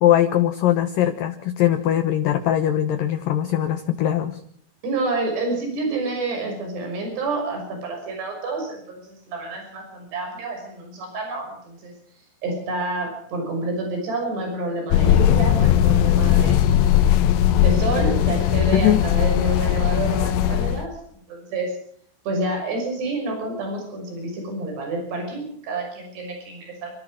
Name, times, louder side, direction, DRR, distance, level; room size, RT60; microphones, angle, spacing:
voice 1, 0.0-4.4 18.7-19.0, left 11 dB, 65° left, 8 dB, 2.5 m, -20 dB
voice 2, 4.8-11.9 12.4-16.7 17.6-21.0 21.3-21.7 22.3-27.0, right 2 dB, 70° right, 2 dB, 8.0 m, -28 dB
sound 1, 14.9-20.8, left 10 dB, 85° left, 3.3 m, -18 dB
29.0 x 14.5 x 6.4 m, 0.66 s
omnidirectional pair, 4.9 m